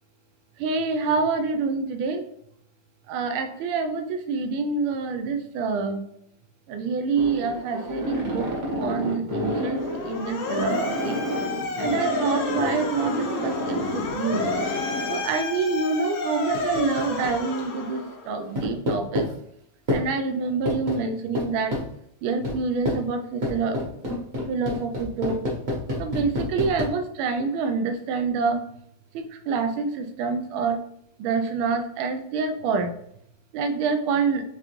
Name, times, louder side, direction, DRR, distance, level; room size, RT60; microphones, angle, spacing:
voice 1, 0.6-2.2 3.1-6.0 6.7-8.5 8.8-11.2 11.8-14.4 15.1-19.3 19.9-21.7 22.2-23.8 24.5-25.4 26.0-28.6 29.1-30.8 31.2-32.9 33.5-34.4, right 4 dB, 80° right, 7 dB, 1.4 m, -26 dB
sound 1, 7.1-15.2 16.5-17.6 18.5-19.3 19.9-20.0 20.6-21.0 21.3-21.9 22.4-22.6 22.8-23.0 23.4-26.8, left 1 dB, 35° right, 0.8 m, -29 dB
Motor vehicle (road) / Siren, 9.8-18.4, left 3 dB, 75° left, 1.5 m, -31 dB
5.0 x 3.4 x 3.0 m, 0.72 s
omnidirectional pair, 2.3 m